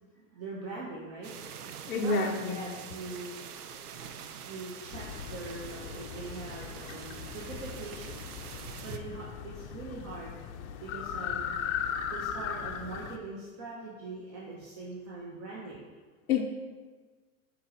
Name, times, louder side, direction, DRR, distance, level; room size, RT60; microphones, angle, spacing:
voice 1, 0.1-1.3 1.9-3.4 4.4-8.2 8.8-10.3 10.8-11.5 12.1-15.9, right 3 dB, 35° right, -5 dB, 1.1 m, -42 dB
sound 1, 1.2-9.0, right 7 dB, 85° right, 0.6 m, -45 dB
voice 2, 1.9-2.7 16.3-16.4, left 4 dB, 85° left, 2 dB, 0.7 m, -28 dB
sound 2, 4.9-13.2, left 8 dB, 50° left, 0.6 m, -38 dB
8.3 x 4.2 x 2.7 m, 1.4 s
hypercardioid pair, 115°, 44 cm